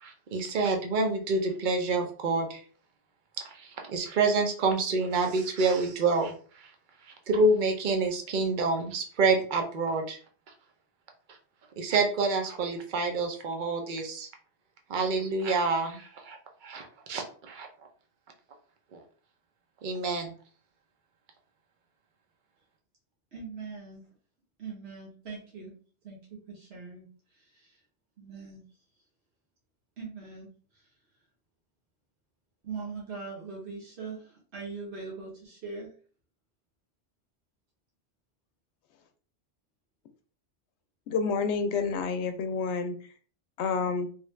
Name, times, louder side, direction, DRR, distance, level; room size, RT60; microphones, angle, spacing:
voice 1, 0.0-2.6 3.4-6.7 7.3-10.2 11.8-14.3 14.9-17.7 18.9-19.0 19.8-20.3, right 3 dB, 50° right, 3 dB, 0.7 m, -28 dB
voice 2, 23.3-24.1 24.6-25.7 26.0-27.1 27.3-27.8 28.2-28.6 30.0-30.5 32.6-35.9, right 4 dB, 70° right, -4 dB, 1.3 m, -41 dB
voice 3, 41.1-42.9 43.6-44.1, left 5 dB, 90° left, 8 dB, 0.9 m, -29 dB
3.1 x 2.3 x 3.1 m, 0.43 s
omnidirectional pair, 1.1 m